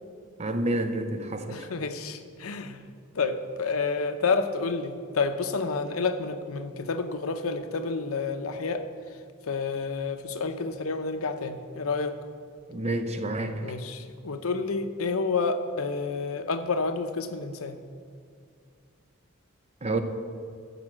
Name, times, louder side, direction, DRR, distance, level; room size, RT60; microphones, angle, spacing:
voice 1, 0.4-1.7 12.7-13.8 19.8-20.0, right 1 dB, 30° right, 7 dB, 0.7 m, -29 dB
voice 2, 1.5-2.9 3.1-8.9 9.5-12.2 13.6-17.8, left 4 dB, 75° left, 9 dB, 0.7 m, -29 dB
13.5 x 5.3 x 7.3 m, 2.2 s
head